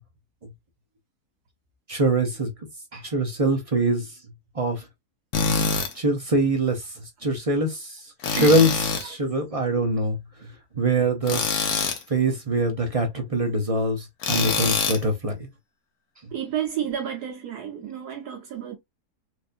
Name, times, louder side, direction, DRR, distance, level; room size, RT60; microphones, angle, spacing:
voice 1, 1.9-2.5 2.9-4.1 4.6-4.8 5.9-6.8 7.2-10.2 10.8-11.4 12.1-15.4, right 2 dB, 35° right, 0.5 m, -23 dB
Tools, 5.3-5.9 8.2-9.1 11.3-12.0 14.2-15.0, left 5 dB, 70° left, 1.3 m, -24 dB
voice 2, 16.3-18.7, right 9 dB, 75° right, 1.5 m, -30 dB
4.5 x 2.6 x 2.5 m
omnidirectional pair, 1.7 m